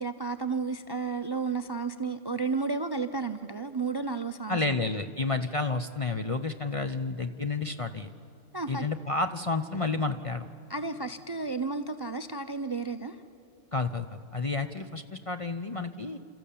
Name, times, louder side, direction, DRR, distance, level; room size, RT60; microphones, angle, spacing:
voice 1, 0.0-4.6 8.5-8.9 10.7-13.2, right 4 dB, 30° right, 10 dB, 0.5 m, -32 dB
voice 2, 4.5-8.1 8.7-10.5 13.7-16.2, left 3 dB, 35° left, 8 dB, 0.6 m, -30 dB
29.0 x 14.0 x 8.5 m, 2.9 s
omnidirectional pair, 1.3 m